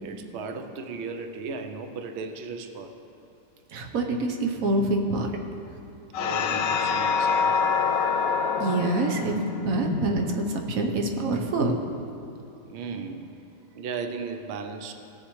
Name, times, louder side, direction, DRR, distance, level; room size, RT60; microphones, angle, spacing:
voice 1, 0.0-2.9 6.1-7.8 12.7-13.3 13.7-14.9, right 4 dB, 75° right, 5 dB, 0.6 m, -36 dB
voice 2, 3.7-5.3 8.6-11.8, right 2 dB, 55° right, 2 dB, 1.2 m, -26 dB
sound 1, 6.1-10.9, left 5 dB, 90° left, 1.3 m, -26 dB
18.0 x 7.2 x 3.1 m, 2.8 s
omnidirectional pair, 1.9 m